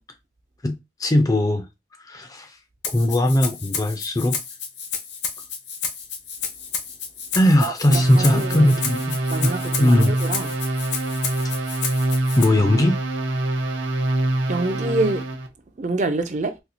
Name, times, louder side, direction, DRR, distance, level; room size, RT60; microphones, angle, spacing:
voice 1, 0.6-1.7 2.0-2.6 2.9-4.4 7.3-9.2 9.4-10.1 12.4-13.0, left 1 dB, 20° left, 0.4 m, -19 dB
Rattle (instrument), 2.8-12.4, left 6 dB, 60° left, 0.8 m, -31 dB
voice 2, 7.6-8.7 9.3-10.6 14.5-15.3 15.8-16.6, right 2 dB, 40° right, 0.4 m, -26 dB
sound 1, 7.9-15.5, right 1 dB, 70° right, 0.8 m, -25 dB
4.2 x 2.3 x 2.7 m
head